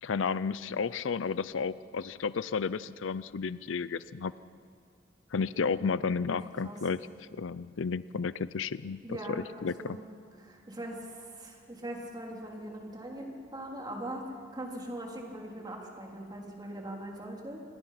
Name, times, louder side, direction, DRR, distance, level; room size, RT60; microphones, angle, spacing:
voice 1, 0.0-4.3 5.3-7.0 7.4-9.0 9.3-10.0, left 5 dB, 80° left, 17 dB, 0.5 m, -32 dB
voice 2, 9.0-10.1 10.4-17.6, right 1 dB, 20° right, -1 dB, 3.6 m, -41 dB
28.0 x 20.5 x 5.9 m, 2.1 s
head